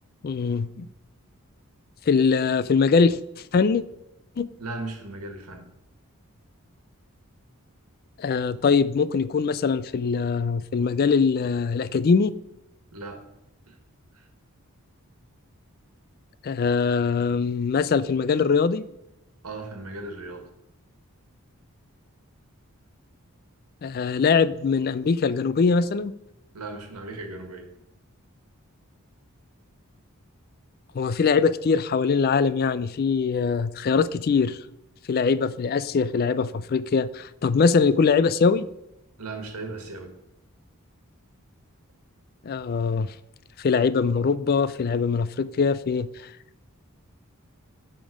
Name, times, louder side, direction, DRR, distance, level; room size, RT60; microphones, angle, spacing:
voice 1, 0.2-0.9 2.1-3.2 3.5-3.8 4.4-4.5 8.2-12.3 16.4-18.8 23.8-26.1 30.9-34.6 35.1-38.7 42.4-43.1 43.6-46.3, left 5 dB, 40° left, 16 dB, 0.3 m, -22 dB
voice 2, 4.6-5.7 12.9-13.2 13.7-13.8 14.1-14.3 19.4-20.4 26.5-27.7 39.2-40.1, right 2 dB, 85° right, 4 dB, 1.5 m, -37 dB
10.0 x 3.7 x 4.8 m, 0.86 s
head